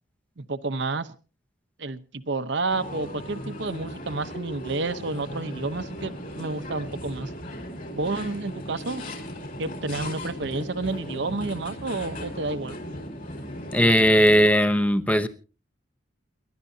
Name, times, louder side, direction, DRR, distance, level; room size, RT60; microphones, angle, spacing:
voice 1, 0.4-1.1 1.8-7.3 7.9-9.0 9.6-12.8, right 3 dB, 60° right, 0.9 m, -30 dB
sound 1, 2.7-14.5, equal, 40° left, 5.0 m, -37 dB
voice 2, 13.7-15.3, equal, 5° left, 0.8 m, -18 dB
29.0 x 12.0 x 2.8 m
head